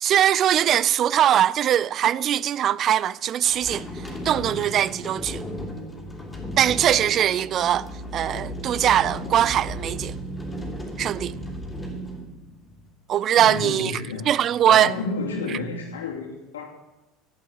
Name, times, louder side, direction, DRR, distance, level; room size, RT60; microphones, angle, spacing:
voice 1, 0.0-3.9 4.2-5.4 6.6-10.2 11.0-11.3 13.1-14.0 14.3-14.9, right 10 dB, 45° right, 0.4 m, -21 dB
sound 1, 3.5-12.9, equal, 10° left, 3.2 m, -35 dB
voice 2, 13.4-14.3 14.6-16.7, left 3 dB, 90° left, 2.7 m, -31 dB
11.5 x 7.8 x 7.9 m
hypercardioid pair, 80°, 0 cm